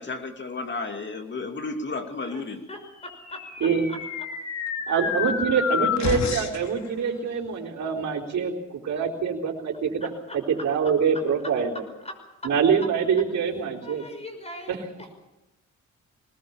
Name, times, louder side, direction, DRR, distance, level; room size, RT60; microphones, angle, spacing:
voice 1, 0.0-2.6, left 3 dB, 35° left, 5 dB, 2.7 m, -33 dB
voice 2, 2.7-3.4 3.9-4.0 4.9-5.0 5.2-5.3 10.0-10.6 12.0-12.2 13.8-14.8, left 1 dB, 20° left, 6 dB, 5.8 m, -40 dB
sound 1, 3.1-6.7, left 6 dB, 60° left, 3.0 m, -29 dB
voice 3, 4.9-10.1 10.5-11.8 12.4-14.1 14.7-14.8, right 6 dB, 60° right, -3 dB, 4.2 m, -25 dB
22.0 x 19.5 x 7.2 m, 0.99 s
cardioid pair, 120°, 31 cm